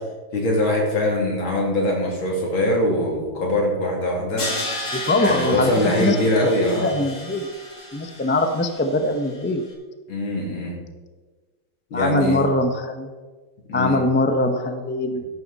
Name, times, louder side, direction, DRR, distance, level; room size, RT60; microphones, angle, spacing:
voice 1, 0.3-4.5 5.2-6.9 8.2-8.3 10.1-10.8 11.9-12.5 13.7-14.0, left 1 dB, 75° left, -1 dB, 3.6 m, -22 dB
Crash cymbal, 4.4-9.4, left 1 dB, 55° left, 3.2 m, -33 dB
voice 2, 4.9-5.7 6.0-6.2 6.6-7.5 7.9-9.6 11.9-13.1 13.7-15.2, left 2 dB, 15° left, 6 dB, 0.3 m, -22 dB
13.5 x 12.0 x 4.1 m, 1.3 s
omnidirectional pair, 2.2 m